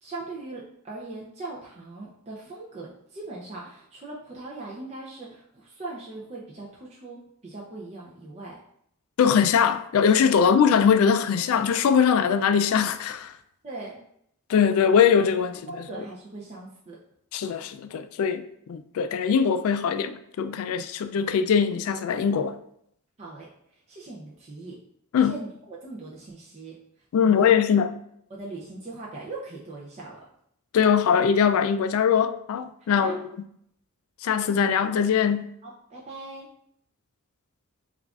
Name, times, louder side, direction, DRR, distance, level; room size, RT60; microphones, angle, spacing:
voice 1, 0.0-8.6 13.6-14.0 15.7-17.0 23.2-23.5 23.9-24.8 25.2-26.7 27.2-27.5 28.3-30.3 32.9-33.1 35.6-36.5, right 2 dB, 30° right, 0.5 m, -40 dB
voice 2, 9.2-13.3 14.5-15.6 17.3-22.5 25.1-25.4 27.1-28.0 30.7-33.1 34.2-35.5, left 7 dB, 70° left, 0.3 m, -21 dB
7.1 x 2.4 x 2.4 m
head